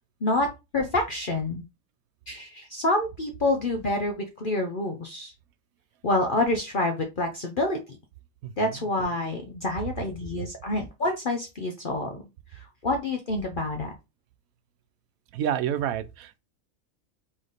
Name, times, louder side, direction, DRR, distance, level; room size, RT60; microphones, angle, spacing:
voice 1, 0.2-1.6 2.3-5.3 6.0-7.8 8.6-12.2 12.5-13.9, left 2 dB, 45° left, 0.7 m, -27 dB
voice 2, 15.3-16.4, right 9 dB, 85° right, 1.0 m, -28 dB
4.0 x 3.3 x 3.9 m
omnidirectional pair, 1.4 m